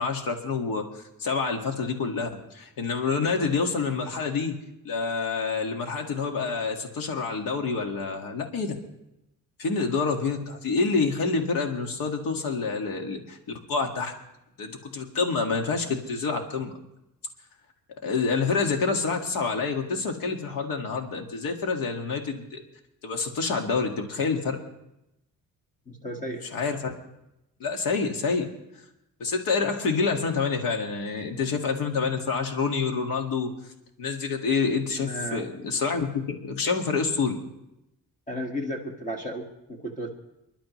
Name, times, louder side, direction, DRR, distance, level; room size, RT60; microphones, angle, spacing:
voice 1, 0.0-4.5 4.8-8.7 9.6-13.4 13.7-14.1 14.6-16.7 18.0-22.6 23.0-24.6 26.4-26.9 27.6-28.5 29.2-33.5 34.0-37.4, left 4 dB, 70° left, 3 dB, 1.9 m, -27 dB
voice 2, 25.9-26.4 35.0-35.5 38.3-40.1, equal, 20° left, 2 dB, 1.7 m, -34 dB
29.5 x 11.5 x 3.1 m, 0.87 s
cardioid pair, 155°, 35 cm